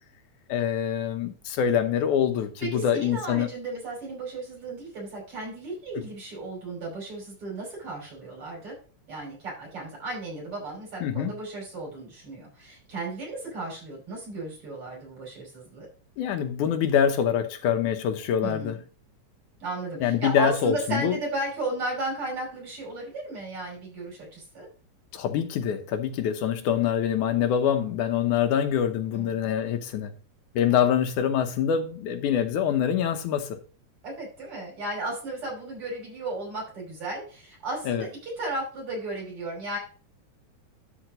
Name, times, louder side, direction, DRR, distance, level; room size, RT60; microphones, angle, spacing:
voice 1, 0.5-3.5 11.0-11.3 16.2-18.8 20.0-21.2 25.1-30.1 30.6-33.6 37.9-38.1, left 9 dB, 85° left, 2.4 m, -25 dB
voice 2, 2.6-8.7 9.1-15.9 18.4-18.7 19.6-24.7 29.1-29.5 34.0-39.8, right 2 dB, 45° right, 6.6 m, -34 dB
12.0 x 4.5 x 5.1 m
omnidirectional pair, 3.4 m